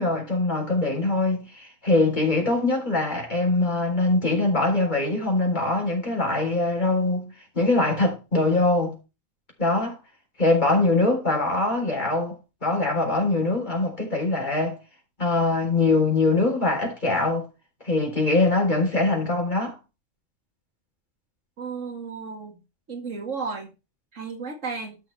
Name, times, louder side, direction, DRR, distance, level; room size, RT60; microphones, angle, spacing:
voice 1, 0.0-8.9 9.6-10.0 10.4-12.4 12.6-14.8 15.2-17.5 17.8-19.8, left 2 dB, 35° left, 4.0 m, -23 dB
voice 2, 21.6-22.6 22.9-23.7 24.1-25.0, right 5 dB, 85° right, 2.5 m, -33 dB
13.0 x 6.1 x 3.4 m
omnidirectional pair, 1.3 m